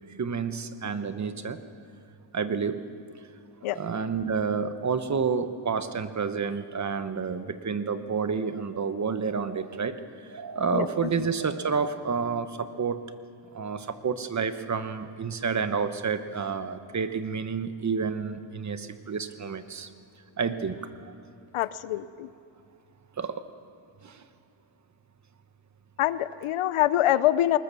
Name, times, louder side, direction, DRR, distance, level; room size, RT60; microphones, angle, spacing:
voice 1, 0.2-1.6 2.3-2.8 3.7-10.0 10.3-13.0 13.5-19.9 20.4-21.1 23.2-23.4 24.0-24.3, right 5 dB, 35° right, 10 dB, 1.1 m, -29 dB
voice 2, 21.5-22.3 26.0-27.6, left 13 dB, 90° left, 16 dB, 0.7 m, -24 dB
20.0 x 20.0 x 6.9 m, 2.4 s
cardioid pair, 110°, 49 cm